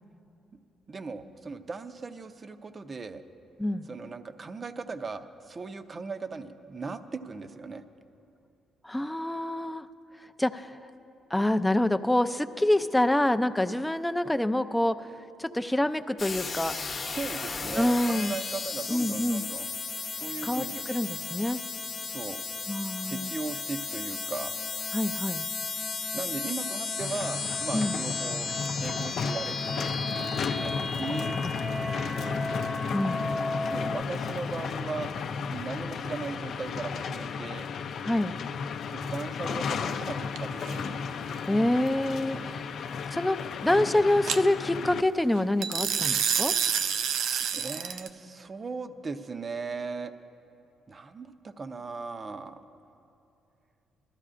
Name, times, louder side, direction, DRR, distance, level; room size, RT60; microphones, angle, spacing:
voice 1, 0.9-3.2 3.9-7.8 16.9-19.7 20.1-20.9 21.8-22.4 23.1-24.5 26.1-28.5 28.8-29.9 30.5-31.4 31.7-32.4 33.6-35.1 35.5-37.7 38.9-41.0 42.3-42.5 47.5-50.1 50.9-52.6, right 4 dB, 35° right, 10 dB, 0.6 m, -38 dB
voice 2, 8.8-9.9 10.4-10.8 11.3-15.1 15.4-16.7 17.8-18.4 18.9-19.5 20.4-21.6 22.7-23.3 24.9-25.5 27.7-28.0 31.4-31.5 32.9-33.2 38.0-38.4 41.4-42.6 43.1-46.5, left 1 dB, 10° left, 10 dB, 0.4 m, -26 dB
sound 1, 16.2-34.0, left 3 dB, 40° left, 0.9 m, -34 dB
sound 2, 27.0-45.0, left 5 dB, 65° left, 0.5 m, -34 dB
sound 3, 40.4-40.7 44.3-44.4 45.6-48.1, right 7 dB, 80° right, 0.4 m, -28 dB
20.5 x 13.5 x 2.5 m, 2.8 s
cardioid pair, 90°, 0 cm